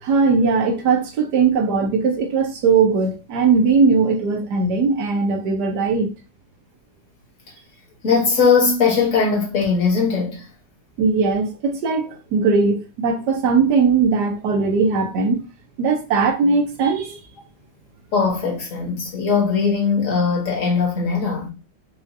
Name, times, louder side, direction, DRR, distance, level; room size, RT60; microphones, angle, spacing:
voice 1, 0.0-6.1 11.0-15.5 15.8-17.2, right 4 dB, 75° right, 1.4 m, -19 dB
voice 2, 8.0-10.5 18.1-21.5, left 5 dB, 50° left, 1.6 m, -19 dB
4.9 x 2.4 x 2.7 m
omnidirectional pair, 1.8 m